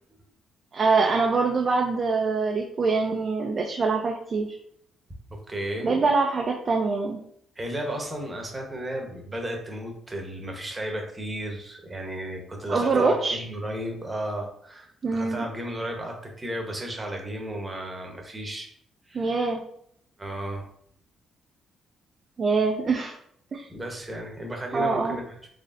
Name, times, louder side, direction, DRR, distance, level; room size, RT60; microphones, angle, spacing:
voice 1, 0.7-4.5 5.8-7.2 12.7-13.4 15.0-15.4 19.1-19.6 22.4-23.1 23.5-23.7 24.7-25.2, right 4 dB, 45° right, 1 dB, 0.4 m, -24 dB
voice 2, 5.3-5.9 7.6-18.7 19.1-19.5 20.2-20.7 23.7-25.5, right 1 dB, 20° right, 1 dB, 0.9 m, -34 dB
4.0 x 3.2 x 2.5 m, 0.69 s
cardioid pair, 90°, 0 cm